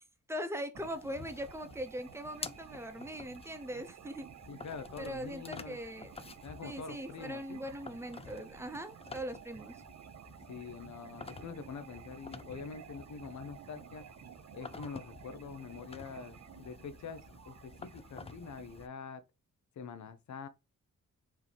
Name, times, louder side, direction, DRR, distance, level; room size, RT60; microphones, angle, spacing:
voice 1, 0.3-4.3 5.0-6.2 6.6-9.8, equal, 10° right, 0.8 m, -41 dB
sound 1, 0.7-18.9, left 4 dB, 20° left, 0.3 m, -51 dB
sound 2, 0.7-18.9, right 10 dB, 55° right, 0.5 m, -53 dB
voice 2, 4.5-5.8 6.4-7.6 10.5-14.0 14.5-19.2 19.8-20.5, left 6 dB, 60° left, 0.8 m, -45 dB
4.6 x 3.0 x 3.4 m
cardioid pair, 70°, 33 cm